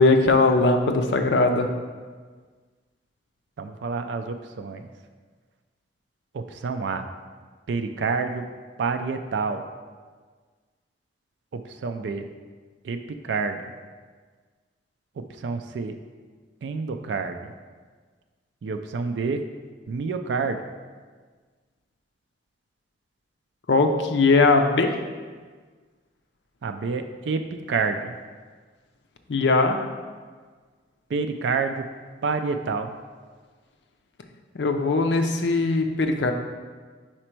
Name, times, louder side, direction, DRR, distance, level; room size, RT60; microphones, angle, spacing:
voice 1, 0.0-1.7 23.7-25.0 29.3-29.8 34.5-36.3, left 3 dB, 70° left, 5 dB, 0.5 m, -20 dB
voice 2, 3.6-4.9 6.3-7.0 7.7-8.4 8.8-9.6 11.5-12.3 12.8-13.0 13.2-13.6 15.4-16.0 16.6-17.5 18.6-19.4 19.9-20.6 26.6-28.1 31.1-31.8 32.2-32.9, right 4 dB, 75° right, 7 dB, 0.4 m, -28 dB
5.0 x 4.3 x 4.4 m, 1.5 s
head